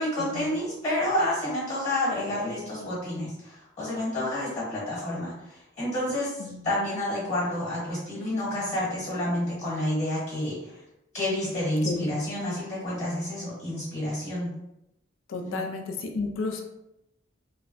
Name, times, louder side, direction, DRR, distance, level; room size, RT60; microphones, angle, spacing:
voice 1, 0.0-10.7 11.1-14.5 15.4-15.6, left 1 dB, 35° left, -7 dB, 1.0 m, -29 dB
voice 2, 6.4-6.7 11.8-12.0 15.3-16.6, left 3 dB, 80° left, 3 dB, 0.4 m, -32 dB
2.8 x 2.1 x 2.5 m, 0.88 s
head